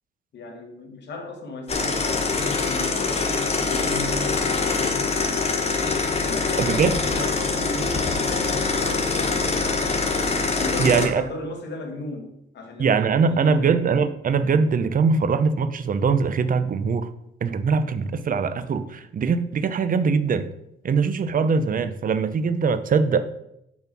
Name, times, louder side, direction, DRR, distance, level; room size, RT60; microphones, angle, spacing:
voice 1, 0.3-4.3 4.7-5.8 6.2-10.1 10.6-13.7, left 2 dB, 60° left, 1.7 m, -36 dB
sound 1, 1.7-11.1, left 4 dB, 30° left, 1.2 m, -24 dB
voice 2, 6.6-6.9 10.8-11.2 12.8-17.1 17.4-20.5 20.8-23.3, right 5 dB, 45° right, 0.7 m, -22 dB
7.0 x 4.4 x 6.0 m
cardioid pair, 90°, 20 cm